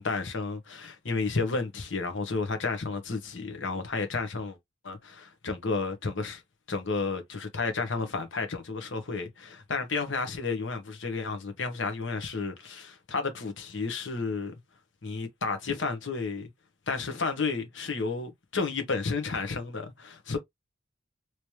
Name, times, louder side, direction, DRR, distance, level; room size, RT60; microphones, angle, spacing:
voice 1, 0.0-4.6 4.8-6.4 6.7-14.5 15.0-16.5 16.9-20.4, left 4 dB, 85° left, 1.1 m, -32 dB
3.2 x 3.0 x 2.9 m
head